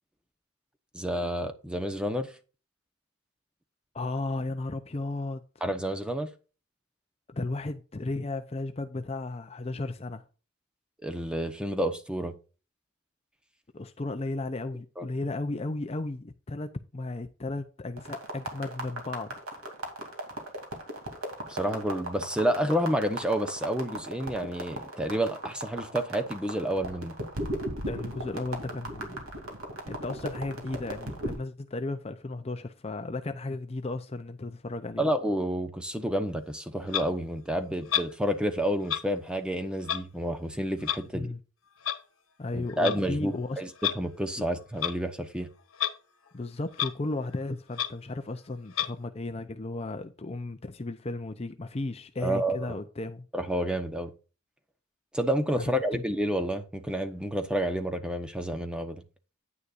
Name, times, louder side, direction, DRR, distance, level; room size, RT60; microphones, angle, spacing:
voice 1, 0.9-2.3 5.6-6.3 11.0-12.4 15.0-15.1 21.5-27.1 35.0-41.3 42.5-45.5 52.2-52.8 53.3-54.1 55.1-59.0, equal, 5° right, 0.9 m, -29 dB
voice 2, 3.9-5.4 7.3-10.2 13.7-19.4 27.9-29.2 29.9-35.1 41.1-41.4 42.4-43.6 46.3-53.3 55.6-56.0, left 2 dB, 30° left, 0.5 m, -34 dB
sound 1, 18.0-31.4, right 1 dB, 85° right, 2.8 m, -37 dB
Clock, 36.9-37.1 37.9-38.1 38.9-39.0 39.8-40.0 40.8-41.0 41.8-42.0 42.7-43.0 43.8-44.0 44.8-45.0 45.7-45.9 46.3-46.4 46.7-46.9 47.3-47.4 47.7-47.9 48.7-48.9, left 11 dB, 80° left, 1.2 m, -29 dB
9.6 x 9.6 x 2.5 m
head